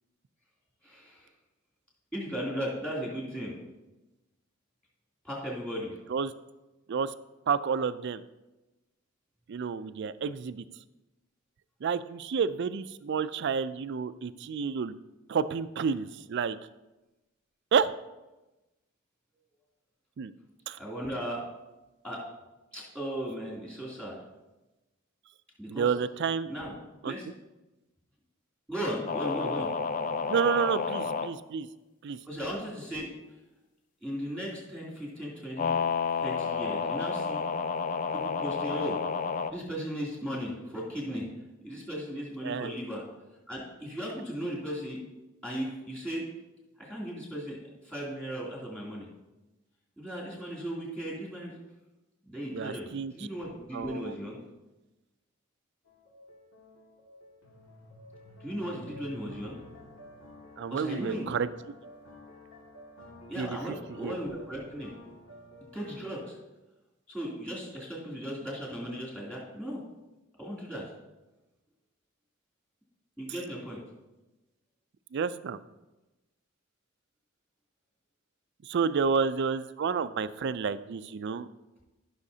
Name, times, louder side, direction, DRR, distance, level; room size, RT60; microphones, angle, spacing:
voice 1, 0.8-1.3 2.1-3.6 5.2-6.0 20.8-21.4 22.0-22.2 22.7-24.2 25.6-25.9 26.5-26.7 27.0-27.2 28.7-29.7 32.2-33.1 34.0-35.7 36.2-37.5 38.1-39.0 39.5-41.2 41.6-43.0 43.5-45.0 45.4-46.2 46.8-49.1 50.0-51.5 52.2-54.4 58.4-59.6 60.7-61.3 63.3-64.9 65.7-66.4 67.1-69.8 70.4-70.9 73.2-73.8, equal, 5° left, -5 dB, 2.8 m, -36 dB
voice 2, 7.5-8.2 9.5-10.6 11.8-14.9 15.3-16.6 17.7-17.9 20.2-20.3 20.7-20.8 25.7-26.5 27.0-27.1 30.3-31.7 32.0-32.2 42.4-42.7 52.5-53.1 53.7-54.1 60.6-61.5 63.4-64.2 75.1-75.6 78.6-81.5, right 6 dB, 55° right, 14 dB, 0.4 m, -30 dB
sound 1, 29.1-31.3 35.6-39.5, left 5 dB, 40° left, 0.4 m, -30 dB
sound 2, 55.9-66.0, left 1 dB, 80° left, 2.0 m, -51 dB
14.5 x 6.3 x 2.8 m, 1.1 s
head